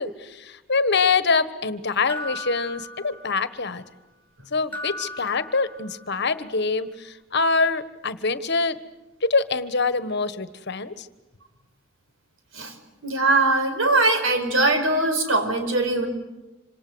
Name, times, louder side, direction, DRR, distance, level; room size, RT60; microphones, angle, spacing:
voice 1, 0.0-3.8 4.5-8.8 9.2-11.1, left 4 dB, 55° left, 13 dB, 1.4 m, -24 dB
sound 1, 2.1-3.6 4.7-6.2, left 1 dB, 10° left, 6.2 m, -37 dB
voice 2, 13.0-16.1, right 2 dB, 80° right, 7 dB, 4.9 m, -21 dB
27.0 x 26.5 x 8.0 m, 1.0 s
head